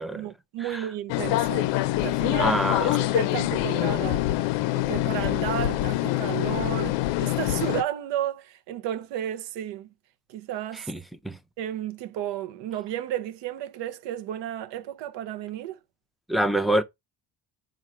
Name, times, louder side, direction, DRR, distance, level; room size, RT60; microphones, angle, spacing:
voice 1, 0.0-1.7 2.0-4.3 4.7-9.9 10.3-10.9 11.6-15.8, right 11 dB, 85° right, 0.8 m, -33 dB
sound 1, 1.1-7.8, left 16 dB, 90° left, 0.5 m, -25 dB
voice 2, 2.4-3.0 10.7-11.0 11.2-11.4 16.3-16.8, right 1 dB, ahead, 0.4 m, -26 dB
4.6 x 2.5 x 4.3 m
cardioid pair, 95°, 42 cm